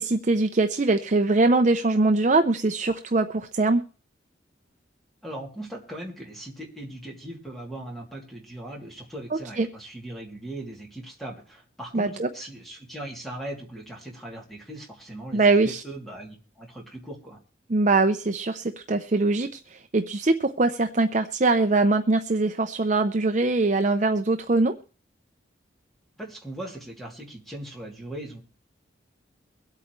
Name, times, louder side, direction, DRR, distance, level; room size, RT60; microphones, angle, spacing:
voice 1, 0.0-3.8 9.6-9.7 11.9-12.3 15.3-15.8 17.7-24.7, right 3 dB, 40° right, 7 dB, 0.6 m, -22 dB
voice 2, 5.2-17.4 26.2-28.4, right 1 dB, ahead, -1 dB, 2.8 m, -39 dB
23.5 x 8.5 x 3.2 m, 0.35 s
head